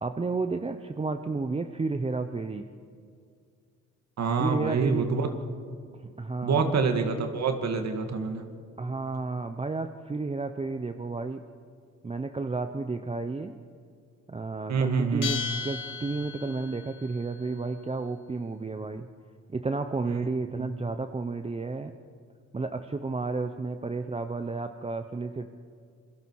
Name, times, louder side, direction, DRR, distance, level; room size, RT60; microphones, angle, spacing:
voice 1, 0.0-2.6 4.4-5.1 6.0-6.6 8.8-11.4 12.0-13.6 14.3-19.1 19.5-21.9 22.5-25.5, right 3 dB, 20° right, 8 dB, 0.9 m, -32 dB
voice 2, 4.2-5.3 6.4-8.5 14.7-15.3 20.6-20.7, right 5 dB, 60° right, 6 dB, 2.2 m, -26 dB
Bell, 15.2-16.8, left 6 dB, 70° left, 4.8 m, -34 dB
28.0 x 22.5 x 4.8 m, 2.3 s
cardioid pair, 90°, 30 cm